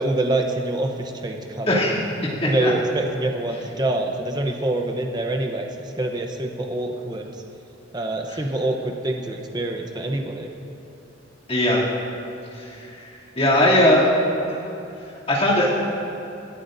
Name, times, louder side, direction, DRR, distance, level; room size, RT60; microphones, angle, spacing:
voice 1, 0.0-2.0 2.4-7.3 7.9-10.5, right 2 dB, 20° right, 3 dB, 0.7 m, -26 dB
voice 2, 1.7-2.0 2.6-2.7 8.3-8.4 11.5-11.8 12.5-13.1 13.4-14.1 15.3-15.9, left 1 dB, 30° left, -6 dB, 2.6 m, -19 dB
20.0 x 13.5 x 2.6 m, 2.9 s
head